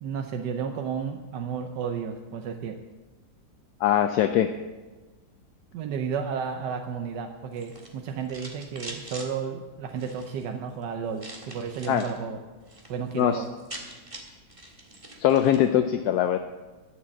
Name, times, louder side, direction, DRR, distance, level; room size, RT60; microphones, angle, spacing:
voice 1, 0.0-2.8 5.7-12.4 12.9-13.5, right 6 dB, 85° right, 5 dB, 1.4 m, -32 dB
voice 2, 3.8-4.5 11.9-12.0 13.1-13.4 15.2-16.4, left 10 dB, 75° left, 8 dB, 1.1 m, -22 dB
sound 1, 7.5-9.3 9.9-10.4 11.2-12.2 12.5-12.9 13.2-13.3 13.5-15.7, right 1 dB, 20° right, 1.7 m, -43 dB
12.0 x 7.6 x 7.2 m, 1.2 s
omnidirectional pair, 1.8 m